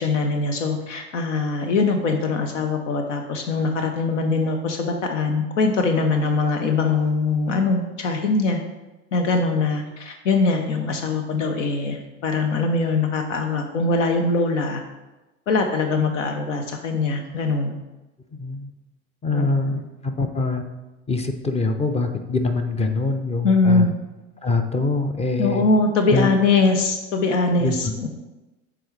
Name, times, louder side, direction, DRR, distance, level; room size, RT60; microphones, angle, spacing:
voice 1, 0.0-8.6 9.1-14.8 15.5-17.8 19.3-19.8 23.4-23.9 25.4-28.1, left 3 dB, 80° left, 5 dB, 0.7 m, -22 dB
voice 2, 18.3-18.7 19.2-20.6 21.1-23.9 24.4-25.6 26.1-26.3 27.6-27.8, left 3 dB, 15° left, 6 dB, 0.5 m, -24 dB
7.7 x 3.8 x 3.2 m, 1.1 s
hypercardioid pair, 75°, 37 cm